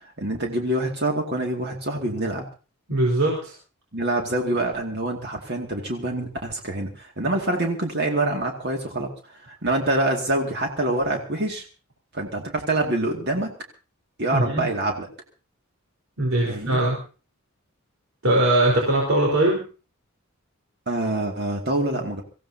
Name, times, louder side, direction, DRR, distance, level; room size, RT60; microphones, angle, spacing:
voice 1, 0.0-2.4 3.9-11.6 12.1-13.5 14.2-15.1 16.4-16.8 20.9-22.2, right 2 dB, 50° right, 1 dB, 2.3 m, -26 dB
voice 2, 2.9-3.5 14.3-14.7 16.2-17.0 18.2-19.6, right 1 dB, 70° right, -2 dB, 4.4 m, -21 dB
25.0 x 15.5 x 2.8 m, 0.34 s
head